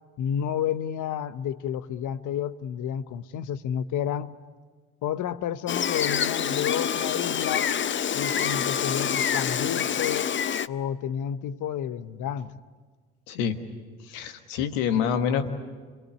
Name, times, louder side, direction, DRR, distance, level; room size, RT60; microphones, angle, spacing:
voice 1, 0.2-4.3 5.0-7.7 8.1-10.3 10.7-12.6, left 9 dB, 60° left, 0.9 m, -30 dB
Gull seagull, 5.7-10.7, left 8 dB, 35° left, 0.6 m, -26 dB
voice 2, 13.3-13.6 14.0-15.5, left 8 dB, 80° left, 1.5 m, -26 dB
26.5 x 19.0 x 8.5 m
hypercardioid pair, 45°, 34 cm